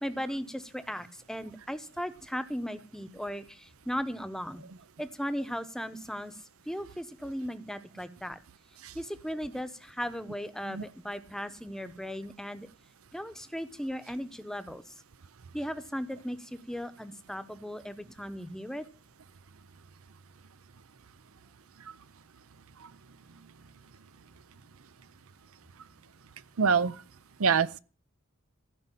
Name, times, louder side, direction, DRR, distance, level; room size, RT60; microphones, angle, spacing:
voice 1, 0.0-4.6 5.0-8.4 8.9-12.7 13.1-14.9 15.5-18.9, equal, ahead, 0.8 m, -37 dB
voice 2, 26.6-26.9 27.4-27.8, right 5 dB, 85° right, 0.7 m, -25 dB
15.5 x 5.4 x 9.9 m
head